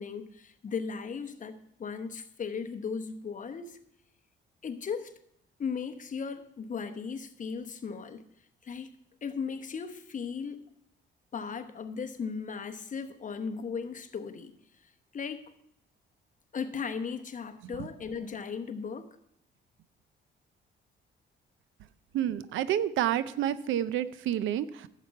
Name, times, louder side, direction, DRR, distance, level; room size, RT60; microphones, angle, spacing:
voice 1, 0.0-3.8 4.6-5.1 5.6-8.2 8.6-8.9 9.2-10.6 11.3-14.5 14.8-15.4 16.5-19.1, left 6 dB, 40° left, 8 dB, 0.9 m, -37 dB
voice 2, 22.1-24.9, right 11 dB, 80° right, 15 dB, 0.5 m, -29 dB
11.5 x 7.5 x 4.7 m, 0.75 s
cardioid pair, 90°, 20 cm